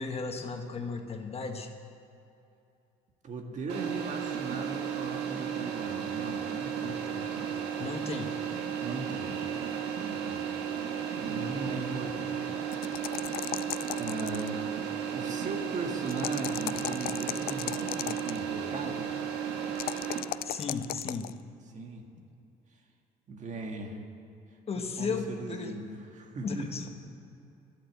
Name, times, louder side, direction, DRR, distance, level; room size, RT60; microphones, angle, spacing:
voice 1, 0.0-1.7 6.8-7.3 7.8-8.3 20.4-21.3 24.7-25.8 26.4-26.9, left 4 dB, 35° left, 4 dB, 1.4 m, -35 dB
voice 2, 3.2-7.0 7.5-7.7 8.8-9.3 10.0-10.4 10.7-12.4 14.0-14.6 15.1-19.1 21.7-22.0 23.3-24.0 24.8-26.9, right 3 dB, 45° right, 3 dB, 1.8 m, -38 dB
sound 1, 3.7-20.2, right 8 dB, 90° right, 1.8 m, -34 dB
sound 2, 12.7-14.6 16.1-18.4 19.8-21.3, left 14 dB, 65° left, 0.4 m, -35 dB
11.5 x 11.5 x 8.1 m, 2.8 s
cardioid pair, 110°, 17 cm